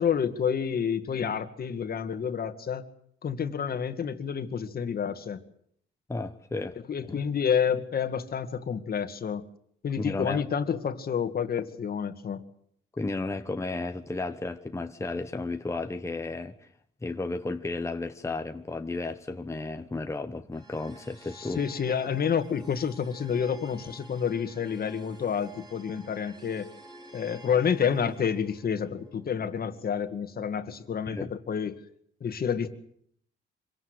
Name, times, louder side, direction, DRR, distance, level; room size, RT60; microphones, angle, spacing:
voice 1, 0.0-2.9 3.2-5.4 6.9-9.4 9.8-12.4 21.4-26.7 27.1-31.8 32.2-32.7, left 7 dB, 50° left, 2.0 m, -29 dB
voice 2, 6.1-6.8 7.1-7.2 10.0-10.4 13.0-16.5 17.0-21.6 31.1-31.3, left 3 dB, 15° left, 1.2 m, -33 dB
sound 1, 20.5-31.6, right 1 dB, 25° right, 5.7 m, -52 dB
25.5 x 17.5 x 8.0 m
cardioid pair, 90°, 20 cm